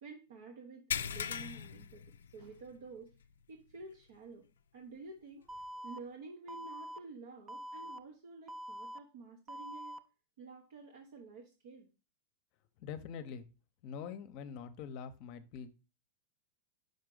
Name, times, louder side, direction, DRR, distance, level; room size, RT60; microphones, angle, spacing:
voice 1, 0.0-3.2 3.5-4.5 4.7-10.0 10.4-11.9, right 4 dB, 75° right, 1 dB, 1.0 m, -51 dB
sound 1, 0.9-2.8 3.1-3.3 3.8-3.9 5.6-5.7, left 8 dB, 90° left, 0.3 m, -39 dB
Alarm, 5.5-6.0 6.5-7.0 7.5-8.0 8.5-9.0 9.5-10.0, equal, 25° right, 0.5 m, -45 dB
voice 2, 12.8-13.4 13.8-15.7, left 7 dB, 55° left, 10 dB, 0.7 m, -44 dB
5.3 x 4.8 x 3.7 m, 0.31 s
hypercardioid pair, 115°, 0 cm